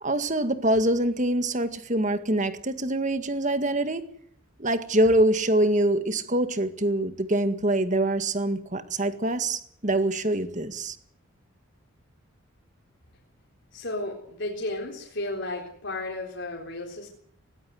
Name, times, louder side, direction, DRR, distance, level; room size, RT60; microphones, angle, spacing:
voice 1, 0.0-4.0 4.6-11.0, right 1 dB, 35° right, 1.9 m, -24 dB
voice 2, 13.7-17.1, left 2 dB, 55° left, 3.9 m, -33 dB
20.0 x 19.0 x 7.9 m
head